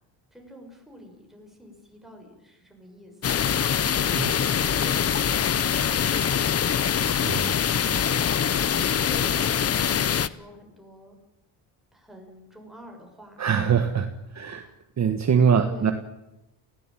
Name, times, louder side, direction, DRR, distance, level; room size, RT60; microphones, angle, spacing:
voice 1, 0.3-6.7 7.7-11.1 11.9-13.4 14.3-14.7 15.6-15.9, equal, ahead, 1 dB, 6.8 m, -47 dB
sound 1, 3.2-10.3, left 8 dB, 30° left, 0.9 m, -24 dB
voice 2, 7.2-7.6 13.4-14.6 15.0-15.9, right 7 dB, 35° right, 7 dB, 1.7 m, -23 dB
29.5 x 17.0 x 9.3 m, 0.91 s
cardioid pair, 145°, 46 cm